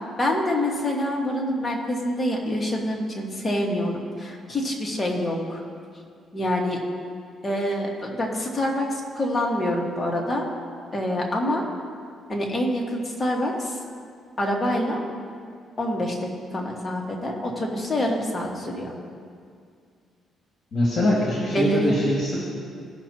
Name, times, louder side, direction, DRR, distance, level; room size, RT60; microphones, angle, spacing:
voice 1, 0.2-5.6 6.3-6.8 7.4-10.5 10.9-11.6 12.3-13.8 14.4-15.0 15.8-18.9 21.1-21.2 21.5-22.0, left 1 dB, 25° left, -1 dB, 1.7 m, -26 dB
voice 2, 20.7-22.4, left 1 dB, 45° left, -5 dB, 2.4 m, -23 dB
17.5 x 5.9 x 3.0 m, 2.2 s
cardioid pair, 90°, 0 cm